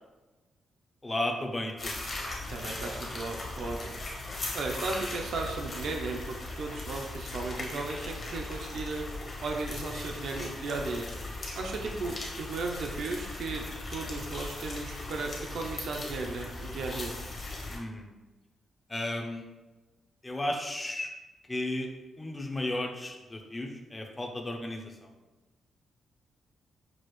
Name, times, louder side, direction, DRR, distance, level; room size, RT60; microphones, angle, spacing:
voice 1, 1.0-1.9 11.8-11.9 17.7-18.1 18.9-19.5 20.2-21.1 21.5-21.9 22.2-25.1, left 1 dB, 15° left, 2 dB, 0.5 m, -34 dB
sound 1, 1.8-17.8, left 2 dB, 35° left, 0.9 m, -38 dB
voice 2, 2.5-3.9 4.5-9.0 9.4-11.1 11.6-13.6 13.9-17.1, right 3 dB, 65° right, 1 dB, 0.5 m, -35 dB
6.1 x 2.4 x 3.1 m, 1.2 s
wide cardioid pair, 145°, 0 cm